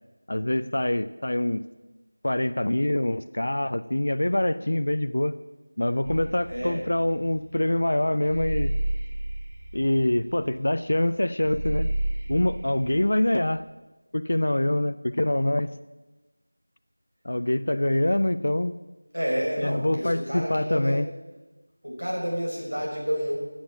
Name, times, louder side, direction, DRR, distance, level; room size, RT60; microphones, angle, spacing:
voice 1, 0.3-1.6 2.2-5.4 5.8-8.7 9.7-11.9 12.3-13.6 14.1-15.7 17.2-18.7 19.6-21.1, left 1 dB, 50° left, 12 dB, 0.5 m, -25 dB
sound 1, 6.0-13.6, right 1 dB, 30° right, 2.4 m, -31 dB
voice 2, 19.1-21.0 21.8-23.4, equal, 75° right, -2 dB, 6.0 m, -29 dB
14.5 x 8.8 x 7.4 m, 1.1 s
figure-of-eight pair, 175°, 0 cm